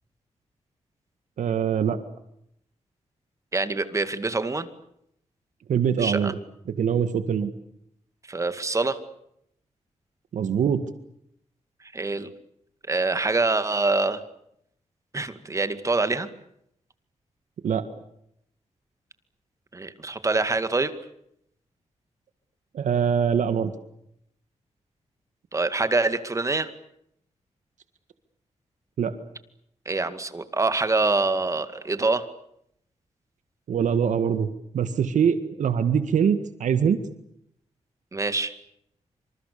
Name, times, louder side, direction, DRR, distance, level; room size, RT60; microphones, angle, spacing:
voice 1, 1.4-2.0 5.7-6.4 6.7-7.5 10.3-10.9 17.6-17.8 22.7-23.7 29.0-29.1 33.7-34.5 34.7-37.0, right 7 dB, 85° right, 10 dB, 1.8 m, -23 dB
voice 2, 3.5-4.7 6.0-6.3 8.3-9.0 11.9-12.3 12.9-14.2 15.1-16.3 19.7-20.9 25.5-26.7 29.9-32.2 38.1-38.5, right 3 dB, 25° right, 11 dB, 2.1 m, -25 dB
27.0 x 26.5 x 6.9 m, 0.75 s
wide cardioid pair, 135°, 12 cm